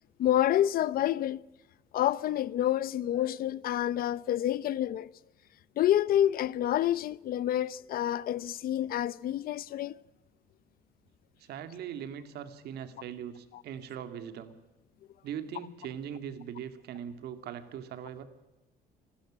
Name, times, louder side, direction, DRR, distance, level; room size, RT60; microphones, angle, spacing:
voice 1, 0.2-1.4 1.9-5.1 5.8-10.0 13.5-13.6, left 12 dB, 60° left, 0.7 m, -28 dB
voice 2, 11.4-14.5 15.2-18.2, right 9 dB, 75° right, 2.5 m, -40 dB
27.5 x 13.0 x 8.9 m
cardioid pair, 110°, 17 cm